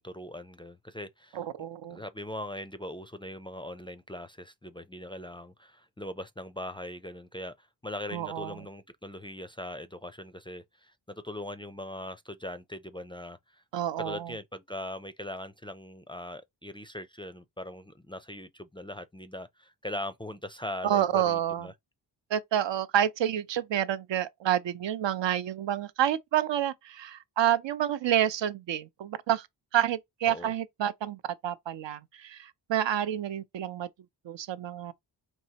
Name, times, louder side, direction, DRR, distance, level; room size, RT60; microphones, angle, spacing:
voice 1, 0.0-1.4 1.9-13.6 14.0-21.7 30.3-30.5, left 1 dB, 10° left, 0.4 m, -40 dB
voice 2, 1.3-2.0 8.1-8.6 13.7-14.3 20.8-21.7 22.3-29.5 29.7-33.9 34.2-34.9, right 10 dB, 70° right, 0.7 m, -29 dB
4.6 x 3.1 x 2.8 m
cardioid pair, 65°, 46 cm